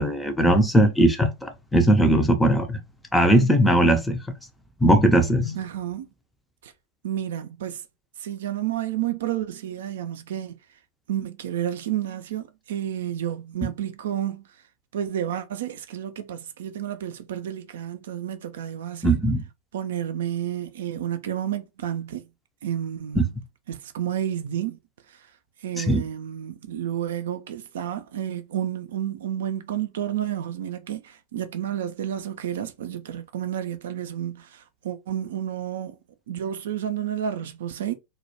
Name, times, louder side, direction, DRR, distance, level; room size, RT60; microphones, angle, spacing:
voice 1, 0.0-2.8 3.1-4.2 4.8-5.6 13.6-13.7 19.0-19.4 23.2-23.3 25.8-26.0, right 1 dB, 5° left, 0.4 m, -19 dB
voice 2, 5.5-6.1 6.6-6.7 7.0-7.8 8.2-10.6 11.1-14.4 14.9-19.2 19.7-22.3 22.6-23.4 23.7-24.8 25.1-25.3 25.6-36.0 36.3-37.9, right 10 dB, 60° right, 0.3 m, -30 dB
2.1 x 2.1 x 2.8 m
figure-of-eight pair, 90°, 0 cm